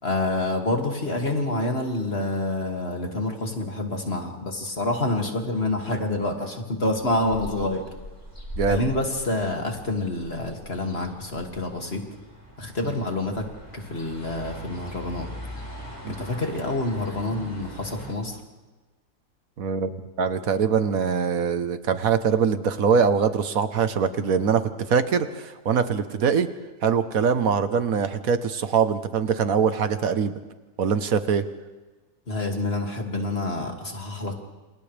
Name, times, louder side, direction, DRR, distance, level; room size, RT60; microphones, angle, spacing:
voice 1, 0.0-7.9 8.7-12.0 12.6-13.5 13.7-15.3 16.1-18.4 32.3-34.3, left 2 dB, 40° left, 2 dB, 2.7 m, -27 dB
sound 1, 6.9-18.1, equal, 15° left, 5.8 m, -40 dB
voice 2, 19.6-24.6 24.9-26.5 26.8-30.3 30.8-31.5, right 6 dB, 65° right, 10 dB, 1.5 m, -23 dB
28.5 x 27.5 x 3.4 m, 1.3 s
omnidirectional pair, 1.7 m